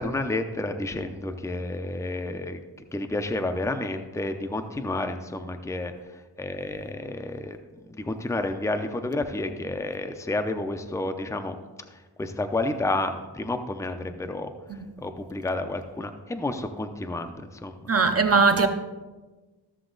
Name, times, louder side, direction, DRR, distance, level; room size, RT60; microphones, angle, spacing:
voice 1, 0.0-2.6 2.9-11.5 11.9-14.5 15.0-17.9, left 2 dB, 5° left, 0.5 m, -30 dB
voice 2, 14.7-15.1 17.9-18.7, right 4 dB, 35° right, 0.7 m, -21 dB
13.5 x 7.0 x 3.9 m
wide cardioid pair, 145°, 42 cm